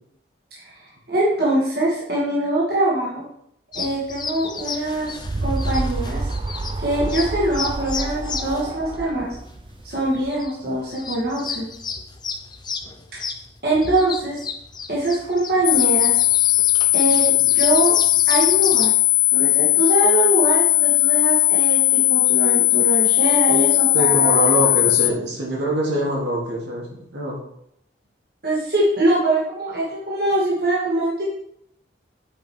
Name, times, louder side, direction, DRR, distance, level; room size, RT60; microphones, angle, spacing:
voice 1, 0.6-3.2 3.7-6.3 6.8-9.4 9.8-11.7 13.1-13.2 13.6-14.4 14.9-16.2 16.9-18.0 18.3-18.9 19.3-24.7 28.4-31.2, right 1 dB, 55° right, -7 dB, 2.3 m, -23 dB
sound 1, 3.7-18.9, left 5 dB, 25° left, 0.6 m, -33 dB
sound 2, 4.7-10.4, right 2 dB, 25° right, 0.3 m, -29 dB
sound 3, 15.6-25.1, left 20 dB, 85° left, 0.3 m, -17 dB
voice 2, 23.9-27.4, right 1 dB, 75° right, -4 dB, 2.8 m, -23 dB
8.3 x 5.3 x 4.6 m, 0.74 s
head